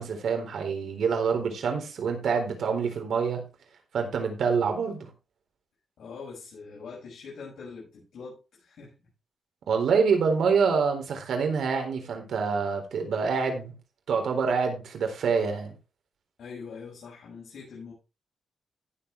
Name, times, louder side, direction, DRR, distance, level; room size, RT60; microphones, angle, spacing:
voice 1, 0.0-3.4 3.9-5.1 9.7-13.7 14.1-15.7, right 5 dB, 80° right, 4.0 m, -26 dB
voice 2, 6.0-8.9 16.4-17.9, left 5 dB, 75° left, 7.1 m, -43 dB
17.0 x 7.7 x 3.4 m
wide cardioid pair, 125°, 0 cm